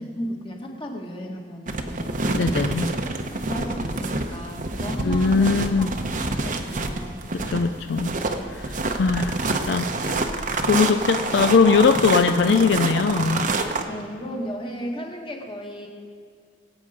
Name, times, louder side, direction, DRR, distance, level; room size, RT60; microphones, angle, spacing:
voice 1, 0.0-2.2 2.7-2.9 3.5-5.5 5.8-5.9 6.4-7.2 8.3-8.5 13.9-15.9, equal, 30° left, 1 dB, 1.7 m, -34 dB
sound 1, 1.7-13.8, right 2 dB, 45° right, 0.9 m, -27 dB
voice 2, 2.3-2.9 5.0-5.9 7.3-8.2 8.5-10.2 10.6-13.5, left 5 dB, 65° left, 8 dB, 0.4 m, -21 dB
20.5 x 8.5 x 5.1 m, 2.2 s
head